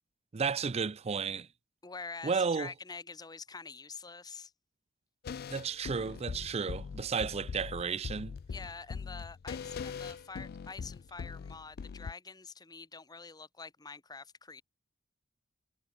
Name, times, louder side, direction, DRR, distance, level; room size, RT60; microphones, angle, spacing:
voice 1, 0.3-1.5 2.2-2.7 5.5-8.4, right 5 dB, 30° right, 0.5 m, -33 dB
voice 2, 1.8-4.5 8.5-14.6, left 4 dB, 20° left, 1.0 m, -46 dB
sound 1, 5.2-12.1, left 5 dB, 50° left, 0.3 m, -41 dB
head